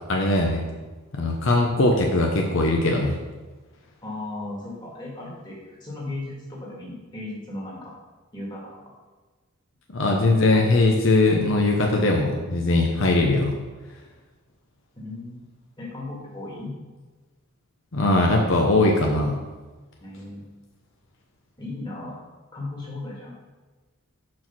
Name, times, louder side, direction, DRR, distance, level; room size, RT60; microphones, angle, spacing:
voice 1, 0.1-0.6 1.1-3.2 9.9-13.5 17.9-19.4, left 2 dB, 65° left, 1 dB, 0.8 m, -20 dB
voice 2, 4.0-7.9 8.3-8.7 15.0-15.4 15.8-16.7 20.0-20.4 21.6-22.2 22.5-23.3, left 2 dB, 20° left, -4 dB, 1.9 m, -36 dB
6.2 x 4.5 x 6.0 m, 1.3 s
head